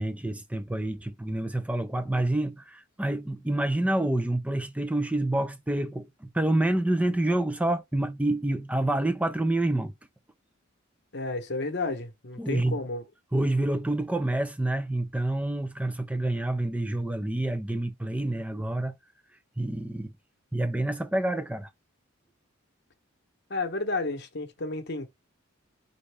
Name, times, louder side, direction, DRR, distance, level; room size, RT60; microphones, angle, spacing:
voice 1, 0.0-9.9 12.4-12.8 13.3-18.9 19.6-20.1 20.5-21.7, right 1 dB, 5° right, 0.4 m, -28 dB
voice 2, 11.1-13.0 23.5-25.1, left 3 dB, 55° left, 0.9 m, -32 dB
5.3 x 2.6 x 3.4 m
head